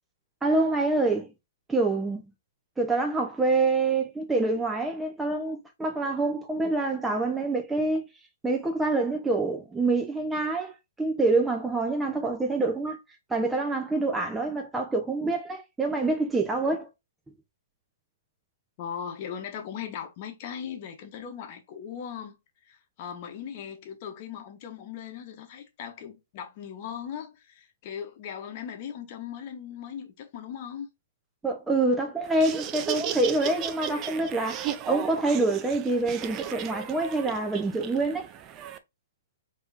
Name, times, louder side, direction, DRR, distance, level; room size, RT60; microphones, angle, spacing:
voice 1, 0.4-1.3 1.7-2.2 2.8-8.1 8.4-10.7 11.0-13.0 13.3-16.9 31.4-38.3, right 2 dB, 10° right, 0.9 m, -26 dB
voice 2, 18.8-22.4 22.6-30.9, left 8 dB, 45° left, 1.2 m, -38 dB
Laughter, 32.2-38.8, right 9 dB, 30° right, 0.5 m, -35 dB
4.6 x 3.1 x 2.7 m
figure-of-eight pair, 120°, 0 cm